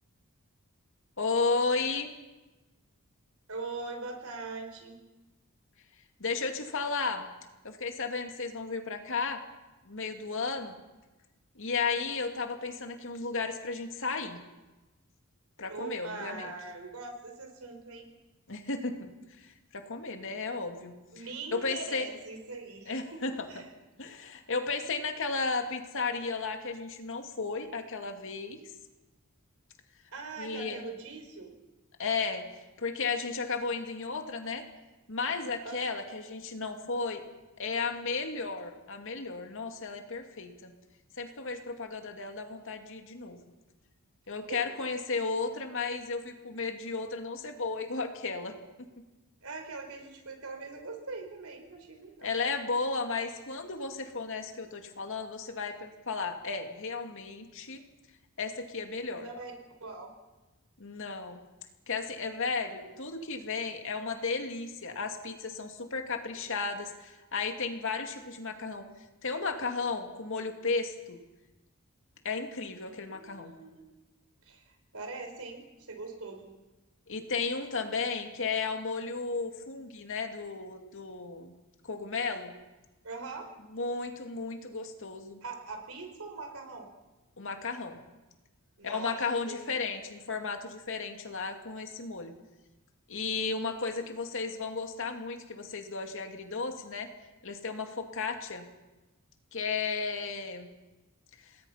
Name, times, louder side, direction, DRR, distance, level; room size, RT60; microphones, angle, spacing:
voice 1, 1.2-2.1 6.2-7.3 7.6-9.4 9.8-10.8 11.6-14.4 15.6-16.5 18.5-20.9 21.5-22.1 22.9-23.5 24.0-28.6 30.4-30.8 32.0-34.6 35.1-37.2 37.6-40.7 41.2-43.4 44.3-48.9 52.2-57.8 58.4-59.3 60.8-61.4 61.9-68.8 69.2-71.2 72.2-73.5 77.1-81.5 81.8-82.5 83.7-85.4 87.4-88.0 88.8-92.3 93.1-97.1 97.4-98.7 99.5-100.7 101.4-101.5, left 4 dB, 60° left, 5 dB, 2.4 m, -34 dB
voice 2, 3.5-5.0 15.7-18.0 21.1-23.7 30.1-31.5 35.6-35.9 44.5-44.6 49.4-52.3 59.1-60.1 72.8-74.0 74.4-76.5 83.0-83.5 85.4-86.9 88.8-89.2 89.5-90.0 93.7-94.1, right 3 dB, 70° right, 4 dB, 4.5 m, -42 dB
28.0 x 20.0 x 5.8 m, 1.1 s
head